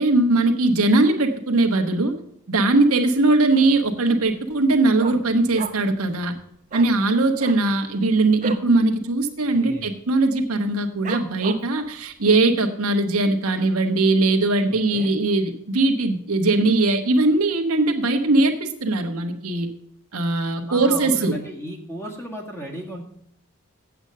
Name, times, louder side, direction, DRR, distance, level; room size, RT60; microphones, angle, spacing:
voice 1, 0.0-2.1 2.5-6.3 6.7-19.7 20.1-21.4, right 2 dB, 85° right, 4 dB, 1.3 m, -20 dB
Dog, 3.5-3.9 4.2-4.3 4.6-6.0 6.3-6.4 6.7-6.9 7.3-8.7 9.1-9.2 9.5-9.9 10.4-10.5 11.0-11.8 12.3-12.4, right 4 dB, 35° right, 0.9 m, -34 dB
voice 2, 9.5-9.9 14.9-15.1 20.7-23.1, equal, 10° left, 0 dB, 1.9 m, -35 dB
8.0 x 8.0 x 6.6 m, 0.72 s
head